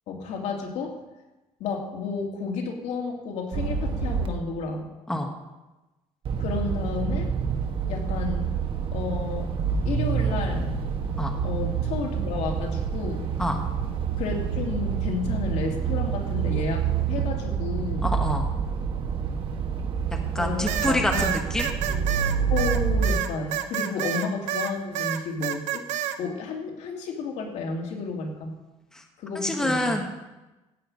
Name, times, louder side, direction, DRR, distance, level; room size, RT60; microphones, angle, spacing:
voice 1, 0.1-1.0 1.6-4.9 6.4-7.3 7.9-8.5 8.9-9.5 9.8-10.7 11.4-13.3 14.2-18.1 20.4-21.3 21.9-22.2 22.5-25.8 26.2-28.5 29.2-30.0, left 4 dB, 75° left, 1 dB, 2.8 m, -31 dB
sound 1, 3.5-4.3 6.3-23.2, right 7 dB, 45° right, 1.4 m, -27 dB
voice 2, 18.0-18.5 20.3-21.7 23.9-24.0 28.9-29.0 29.3-30.1, left 1 dB, 5° left, 3 dB, 1.2 m, -27 dB
sound 2, 20.7-24.7 25.0-26.2, right 11 dB, 80° right, 1.0 m, -28 dB
14.5 x 5.6 x 8.9 m, 1.1 s
cardioid pair, 160°, 12 cm